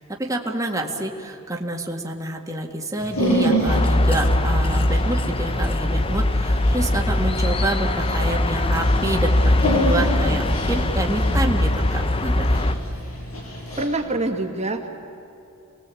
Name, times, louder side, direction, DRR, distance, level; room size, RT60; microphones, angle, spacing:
voice 1, 0.0-12.6, right 1 dB, 15° right, 1 dB, 2.0 m, -28 dB
Dog, 3.0-13.9, right 1 dB, 80° left, 7.3 m, -29 dB
sound 1, 3.7-12.7, left 1 dB, 25° left, 0.8 m, -21 dB
voice 2, 13.8-14.9, right 2 dB, 30° right, 3 dB, 2.1 m, -25 dB
29.0 x 20.5 x 8.5 m, 2.9 s
head